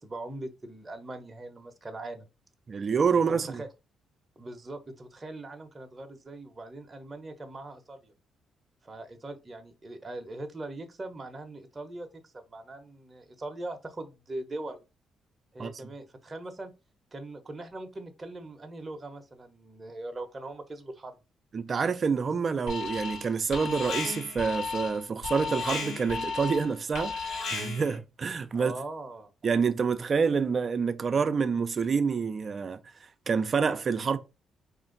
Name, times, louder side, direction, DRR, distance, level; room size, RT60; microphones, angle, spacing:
voice 1, 0.0-2.3 3.1-3.7 4.4-8.1 8.8-14.8 15.5-16.7 17.1-21.2 28.5-29.3, right 2 dB, 25° right, 0.8 m, -41 dB
voice 2, 2.7-3.6 15.6-15.7 21.5-28.7 29.4-32.8 33.3-34.2, right 5 dB, 40° right, 0.4 m, -27 dB
Alarm, 22.7-23.3 23.5-28.0, left 4 dB, 85° left, 1.5 m, -34 dB
4.3 x 2.5 x 3.8 m
cardioid pair, 90°, 0 cm